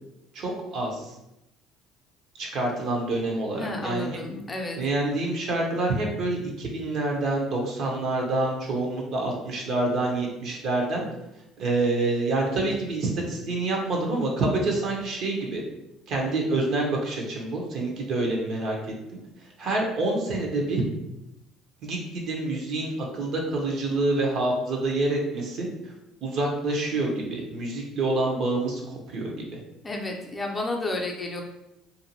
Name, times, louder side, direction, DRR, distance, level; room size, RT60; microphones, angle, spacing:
voice 1, 0.3-1.1 2.4-4.2 4.8-11.0 11.6-15.6 16.1-18.8 19.6-20.8 21.8-25.7 26.2-29.6, right 2 dB, 60° right, 0 dB, 0.8 m, -27 dB
voice 2, 3.5-4.8 29.8-31.4, left 2 dB, 25° left, 1 dB, 0.6 m, -31 dB
2.6 x 2.5 x 2.8 m, 0.89 s
hypercardioid pair, 65°, 0 cm